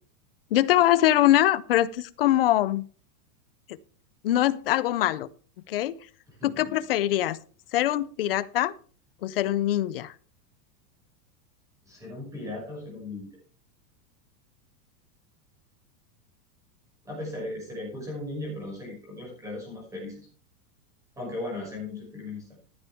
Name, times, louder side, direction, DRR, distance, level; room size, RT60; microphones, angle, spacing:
voice 1, 0.5-2.8 4.2-5.3 5.7-6.0 6.4-7.4 7.7-8.7 9.2-10.1, left 14 dB, 40° left, 17 dB, 0.4 m, -23 dB
voice 2, 6.4-6.8 11.8-13.3 17.0-20.3 21.2-22.6, left 2 dB, 5° right, -2 dB, 5.8 m, -37 dB
14.0 x 9.8 x 3.5 m, 0.42 s
supercardioid pair, 175°, 47 cm